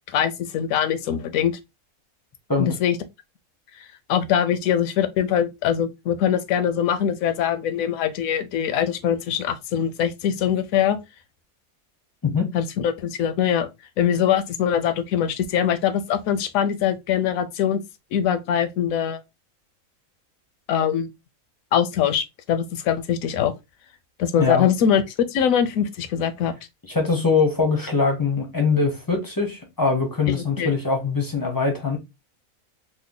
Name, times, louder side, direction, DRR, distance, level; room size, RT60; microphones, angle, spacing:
voice 1, 0.1-1.6 2.6-3.0 4.1-11.0 12.5-13.7 14.0-17.8 18.1-19.2 20.7-21.1 21.7-23.5 24.2-25.0 25.3-26.5 30.3-30.7, left 9 dB, 75° left, 1.0 m, -22 dB
voice 2, 26.9-32.0, left 4 dB, 25° left, 0.4 m, -22 dB
3.2 x 2.1 x 3.6 m
omnidirectional pair, 1.5 m